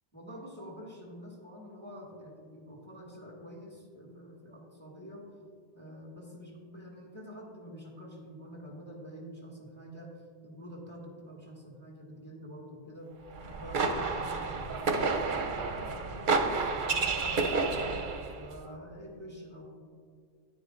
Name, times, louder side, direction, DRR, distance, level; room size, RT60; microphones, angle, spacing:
voice 1, 0.1-5.3 5.7-10.1 10.4-13.1 13.6-17.9 18.4-19.6, equal, 10° left, -3 dB, 1.8 m, -46 dB
sound 1, 13.3-18.4, right 4 dB, 55° right, 0.7 m, -30 dB
10.0 x 9.7 x 2.5 m, 2.1 s
omnidirectional pair, 1.2 m